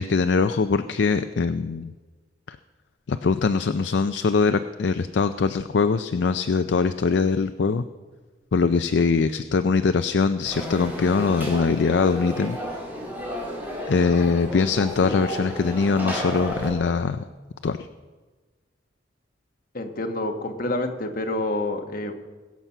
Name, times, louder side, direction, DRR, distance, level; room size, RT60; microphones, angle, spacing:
voice 1, 0.0-1.9 2.5-2.6 3.1-7.8 8.5-12.6 13.9-17.2 17.6-17.8, left 4 dB, 65° left, 10 dB, 0.4 m, -22 dB
Conversation / Crowd, 10.5-16.7, equal, 10° right, 3.4 m, -32 dB
voice 2, 19.7-22.1, left 2 dB, 50° left, 4 dB, 1.3 m, -28 dB
21.5 x 7.3 x 5.5 m, 1.3 s
head